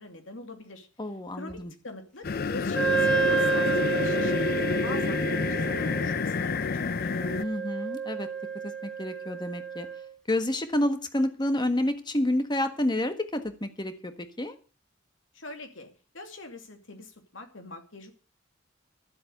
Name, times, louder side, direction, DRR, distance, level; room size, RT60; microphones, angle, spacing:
voice 1, 0.0-0.9 1.3-7.2 15.3-18.1, left 2 dB, 85° left, 5 dB, 2.6 m, -43 dB
voice 2, 1.0-1.7 7.4-8.3 8.6-9.9 10.3-14.1 14.4-14.5, left 1 dB, 25° left, 8 dB, 1.4 m, -29 dB
sound 1, 2.2-7.4, left 4 dB, 50° left, 0.6 m, -28 dB
Wind instrument woodwind instrument, 2.7-10.1, right 4 dB, 5° left, 1.5 m, -30 dB
12.5 x 7.8 x 7.8 m, 0.37 s
head